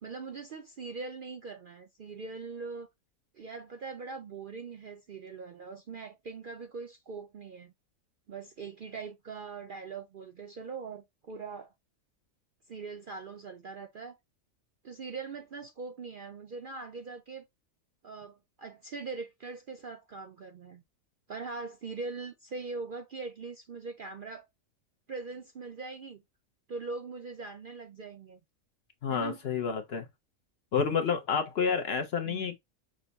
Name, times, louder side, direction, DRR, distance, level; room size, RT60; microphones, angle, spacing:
voice 1, 0.0-2.9 3.3-7.7 8.3-11.7 12.7-14.2 14.8-17.5 18.0-20.8 21.3-24.4 25.1-26.2 26.7-28.4 29.1-29.4 32.3-32.5, right 4 dB, 60° right, 0.6 m, -41 dB
voice 2, 29.0-30.1 30.7-32.6, left 6 dB, 55° left, 0.8 m, -29 dB
6.2 x 2.1 x 3.9 m
omnidirectional pair, 1.4 m